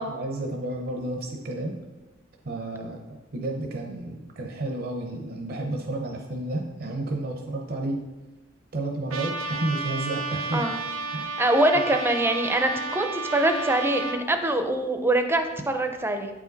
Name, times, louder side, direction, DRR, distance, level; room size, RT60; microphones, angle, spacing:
voice 1, 0.1-1.7 2.4-3.0 3.3-8.0 8.7-10.7 11.1-11.3, right 2 dB, 50° right, 1 dB, 0.7 m, -31 dB
Trumpet, 9.1-14.2, right 3 dB, 80° right, 0.7 m, -32 dB
voice 2, 11.4-16.3, right 1 dB, 10° right, 6 dB, 0.5 m, -24 dB
8.5 x 4.9 x 4.0 m, 1.1 s
head